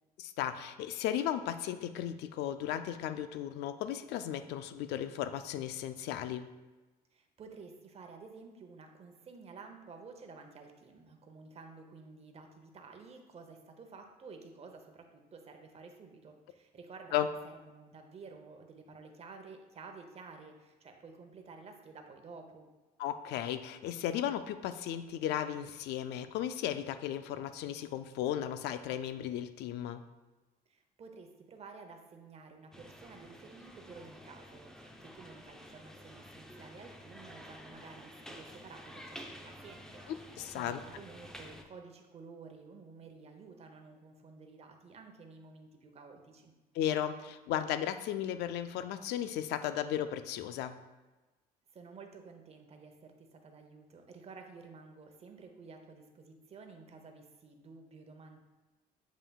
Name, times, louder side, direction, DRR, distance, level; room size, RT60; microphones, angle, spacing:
voice 1, 0.2-6.5 17.1-17.3 23.0-30.0 40.1-40.8 46.7-50.8, left 11 dB, 80° left, 10 dB, 0.4 m, -35 dB
voice 2, 7.1-22.7 30.7-46.5 51.7-58.4, right 4 dB, 40° right, 5 dB, 0.8 m, -52 dB
sound 1, 32.7-41.6, equal, 5° left, 0.5 m, -51 dB
7.3 x 5.5 x 2.3 m, 1.2 s
cardioid pair, 110°, 17 cm